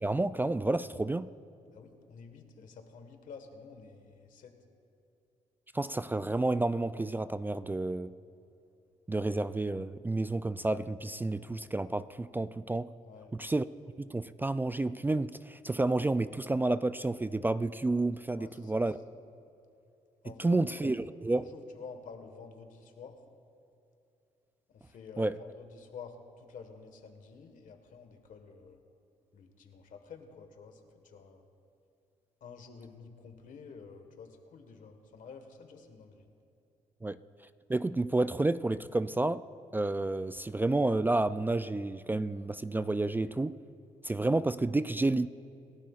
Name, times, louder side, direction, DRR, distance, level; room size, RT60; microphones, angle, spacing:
voice 1, 0.0-1.3 5.7-8.1 9.1-12.9 13.4-13.6 14.0-19.0 20.4-21.4 25.2-25.3 37.0-37.2 37.7-39.4 39.7-43.5 44.0-45.3, right 2 dB, 15° right, 13 dB, 0.3 m, -30 dB
voice 2, 1.7-4.6 13.0-13.4 18.3-19.2 20.2-21.0 21.3-23.2 24.7-28.8 29.3-31.4 32.4-36.3, left 5 dB, 70° left, 6 dB, 1.5 m, -50 dB
27.0 x 12.0 x 2.4 m, 2.7 s
cardioid pair, 65°, 14 cm